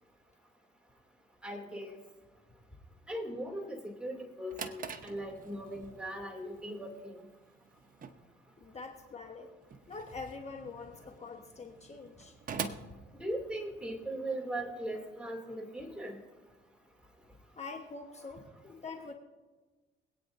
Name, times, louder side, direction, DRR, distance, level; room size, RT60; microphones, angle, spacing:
voice 1, 1.4-2.0 3.1-7.2 13.2-16.2, right 1 dB, 5° right, -1 dB, 2.7 m, -39 dB
Drawer open or close, 4.2-13.9, right 6 dB, 45° right, 0.9 m, -46 dB
voice 2, 8.6-9.5 9.9-12.3 17.5-19.1, left 4 dB, 35° left, 3 dB, 1.2 m, -45 dB
24.0 x 9.0 x 2.7 m, 1.3 s
cardioid pair, 90°, 20 cm